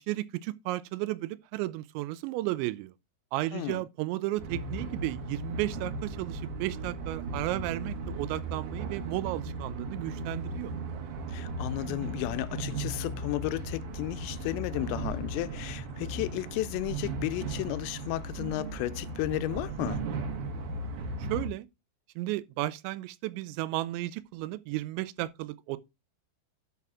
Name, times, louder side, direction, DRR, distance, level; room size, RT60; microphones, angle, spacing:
voice 1, 0.0-2.9 3.3-10.7 21.3-21.7 22.2-25.8, right 17 dB, 90° right, 2.9 m, -33 dB
voice 2, 3.5-3.8 11.3-20.1, left 18 dB, 85° left, 2.7 m, -33 dB
sound 1, 4.4-21.5, right 2 dB, 65° right, 2.0 m, -36 dB
11.0 x 4.7 x 3.5 m
omnidirectional pair, 5.1 m